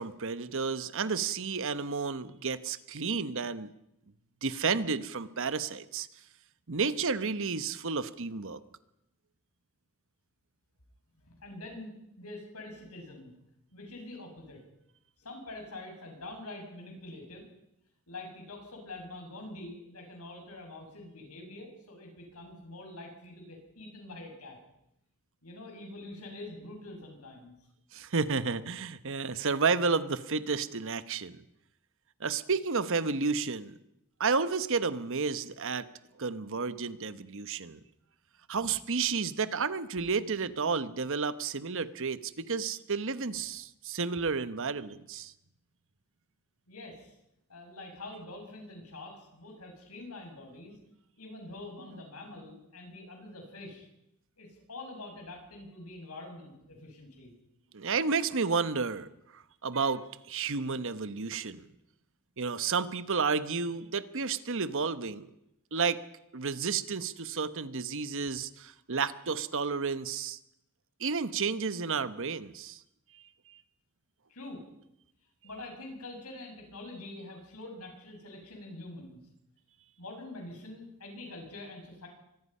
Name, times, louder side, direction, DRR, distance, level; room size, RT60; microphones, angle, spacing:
voice 1, 0.0-3.7 4.4-6.1 6.7-8.6 27.9-31.4 32.2-33.8 34.2-35.8 36.2-37.8 38.5-45.3 57.7-59.1 59.3-61.6 62.4-65.3 65.7-66.0 66.3-70.4 71.0-72.8, right 5 dB, 60° right, 13 dB, 1.1 m, -31 dB
voice 2, 11.2-13.3 13.7-14.7 15.2-17.5 18.1-24.6 25.4-27.6 38.6-38.7 46.7-47.1 47.5-50.8 51.2-53.9 54.4-57.3 74.3-74.6 75.4-79.2 80.0-82.1, left 2 dB, 80° left, 2 dB, 7.0 m, -45 dB
24.5 x 20.0 x 5.6 m, 0.81 s
head